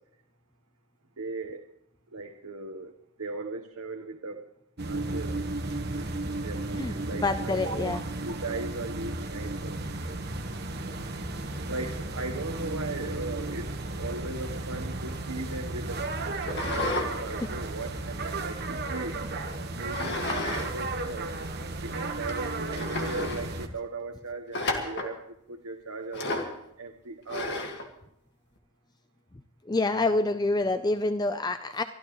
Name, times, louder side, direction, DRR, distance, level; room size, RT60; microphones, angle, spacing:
voice 1, 1.2-1.6 2.1-2.9 3.2-4.5 4.8-5.4 5.9-9.8 11.7-13.7 14.0-19.3 19.8-21.3 21.8-25.2 25.5-27.7, right 3 dB, 85° right, 4 dB, 1.1 m, -38 dB
sound 1, 4.8-23.7, right 2 dB, 50° right, 1.3 m, -34 dB
voice 2, 6.8-8.0 29.7-31.8, left 2 dB, 20° left, 10 dB, 0.5 m, -27 dB
sound 2, 16.4-17.1 17.5-18.9 19.9-20.7 21.0-21.1 21.8-21.9 22.3-22.4 22.7-23.4 24.5-25.1 26.1-26.6 27.3-27.9, left 2 dB, 55° left, 1.9 m, -32 dB
24.0 x 13.5 x 3.1 m, 0.79 s
head